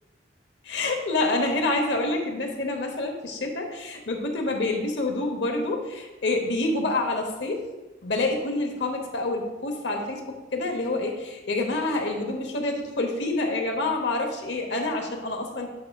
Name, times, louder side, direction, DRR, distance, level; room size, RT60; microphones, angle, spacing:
voice 1, 0.6-7.6 8.0-15.7, left 2 dB, 70° left, 3 dB, 0.9 m, -27 dB
8.3 x 6.1 x 2.3 m, 1.1 s
head